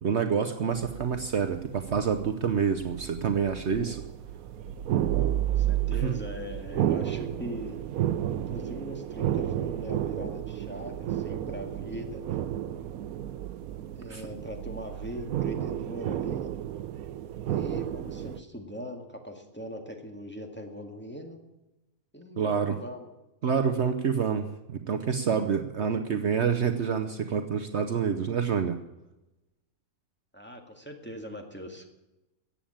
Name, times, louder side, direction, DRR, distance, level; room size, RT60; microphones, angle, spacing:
voice 1, 0.0-4.0 6.0-6.1 14.1-14.2 22.4-22.8 23.4-28.8, right 6 dB, 55° right, 7 dB, 1.0 m, -27 dB
sound 1, 0.7-18.4, right 11 dB, 85° right, 1.2 m, -32 dB
voice 2, 5.5-7.8 8.3-12.2 14.0-16.5 17.5-21.4 22.1-23.1 30.3-31.9, equal, 10° left, 2 dB, 1.8 m, -40 dB
14.5 x 8.6 x 8.7 m, 1.0 s
omnidirectional pair, 1.5 m